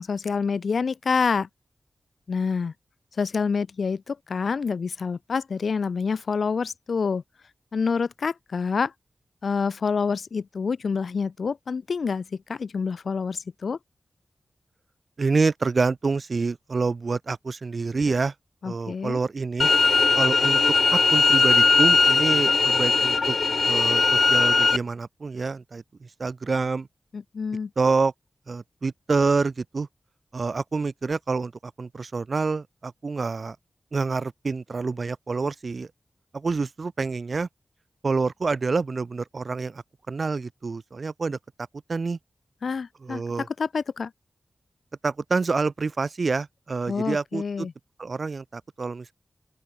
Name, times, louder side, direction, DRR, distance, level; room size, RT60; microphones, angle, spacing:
voice 1, 0.0-1.5 2.3-2.7 3.2-7.2 7.7-8.9 9.4-13.8 18.6-19.2 27.1-27.7 42.6-44.1 46.9-47.7, left 5 dB, 75° left, 0.8 m, -27 dB
voice 2, 15.2-18.3 18.6-19.7 20.1-20.6 20.9-23.4 23.7-26.9 27.8-28.1 28.5-29.9 30.3-33.6 33.9-35.9 36.3-37.5 38.0-41.4 41.9-42.2 43.0-43.5 45.0-47.7 48.0-49.1, right 4 dB, 55° right, 1.6 m, -27 dB
sound 1, 19.6-24.8, left 4 dB, 60° left, 0.3 m, -19 dB
open air
wide cardioid pair, 75°, 0 cm